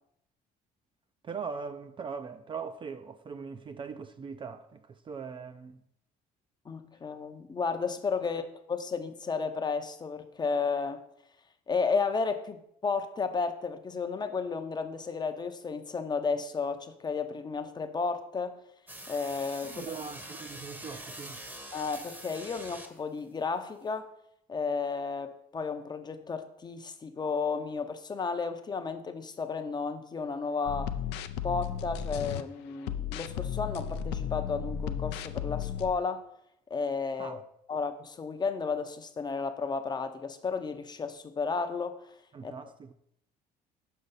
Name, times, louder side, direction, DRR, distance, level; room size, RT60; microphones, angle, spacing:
voice 1, 1.2-5.8 19.6-21.4 37.2-37.4 42.3-42.9, right 5 dB, 30° right, 0.4 m, -40 dB
voice 2, 6.7-11.0 11.7-18.6 19.1-19.8 21.7-24.1 24.5-31.0 31.4-36.2 36.7-37.4 37.7-42.1 42.4-42.5, left 5 dB, 25° left, 0.6 m, -33 dB
sound 1, 18.9-23.2, right 1 dB, 10° right, 0.8 m, -44 dB
sound 2, 30.7-32.4 32.8-35.9, left 8 dB, 85° left, 0.4 m, -34 dB
6.6 x 5.3 x 4.0 m
cardioid pair, 110°, 17 cm